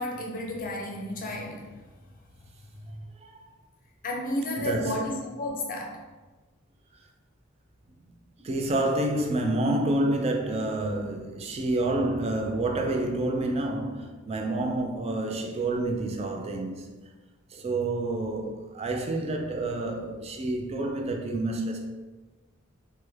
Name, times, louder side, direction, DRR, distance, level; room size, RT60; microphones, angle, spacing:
voice 1, 0.0-1.8 4.0-6.0, left 1 dB, 40° left, 0.5 m, -32 dB
voice 2, 4.6-5.0 8.4-16.9 17.5-21.9, right 2 dB, 30° right, 0.4 m, -28 dB
3.4 x 2.1 x 3.0 m
head